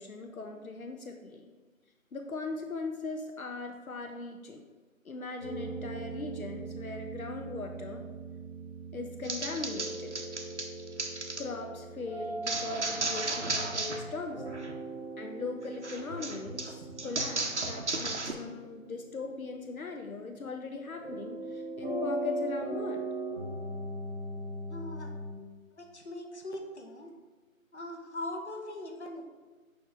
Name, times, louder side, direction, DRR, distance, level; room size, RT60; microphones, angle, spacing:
voice 1, 0.0-1.5 2.1-4.6 5.0-8.0 8.9-10.2 11.4-14.6 15.2-23.1, left 3 dB, 75° left, 4 dB, 0.7 m, -39 dB
sound 1, 5.4-25.3, right 2 dB, 10° left, 1.9 m, -40 dB
sound 2, 9.2-11.4 12.5-14.0 14.3-14.7 15.8-18.3, right 2 dB, 55° right, 0.7 m, -34 dB
voice 2, 24.7-25.1 25.8-27.1 27.7-29.2, left 1 dB, 50° left, 3 dB, 0.9 m, -40 dB
6.9 x 5.0 x 3.3 m, 1.3 s
figure-of-eight pair, 170°, 42 cm